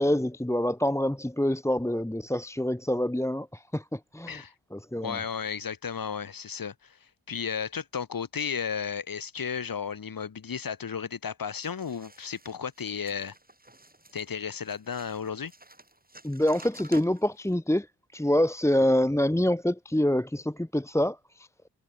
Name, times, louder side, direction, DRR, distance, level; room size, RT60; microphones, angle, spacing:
voice 1, 0.0-4.4 4.7-5.2 16.2-17.9 18.1-21.5, left 1 dB, 5° left, 1.3 m, -26 dB
voice 2, 5.0-7.0 7.3-13.3 14.1-15.5, left 6 dB, 50° left, 1.4 m, -34 dB
sound 1, 11.6-17.5, right 2 dB, 20° right, 5.6 m, -53 dB
wide cardioid pair, 75°, 43 cm